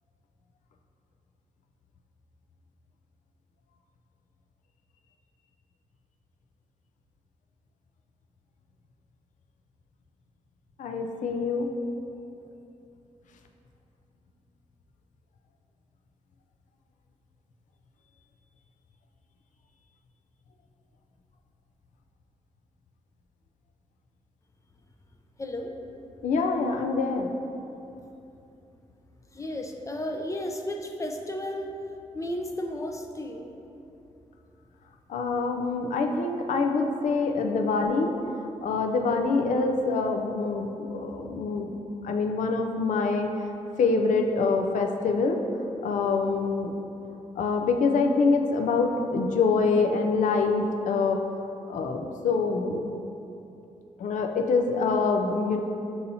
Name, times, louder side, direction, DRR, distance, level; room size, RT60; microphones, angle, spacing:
voice 1, 10.8-11.7 26.2-27.3 35.1-38.2 38.6-41.8 42.0-43.3 43.8-45.4 45.8-46.7 47.4-51.2 51.7-52.8 54.0-55.6, left 4 dB, 80° left, 3 dB, 0.4 m, -25 dB
voice 2, 25.4-25.7 29.3-31.7 32.1-33.5, left 1 dB, 25° left, 3 dB, 0.5 m, -33 dB
6.8 x 2.7 x 2.7 m, 2.8 s
cardioid pair, 65°, 13 cm